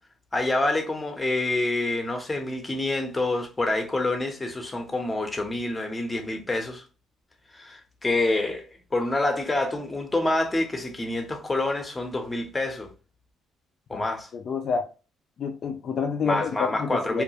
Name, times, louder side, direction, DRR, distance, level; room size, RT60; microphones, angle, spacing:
voice 1, 0.3-6.8 7.5-12.9 13.9-14.3 16.2-17.2, left 2 dB, 20° left, 0.7 m, -27 dB
voice 2, 14.3-14.9 15.4-17.2, left 5 dB, 55° left, 0.3 m, -28 dB
2.2 x 2.1 x 2.7 m
supercardioid pair, 75°, 0 cm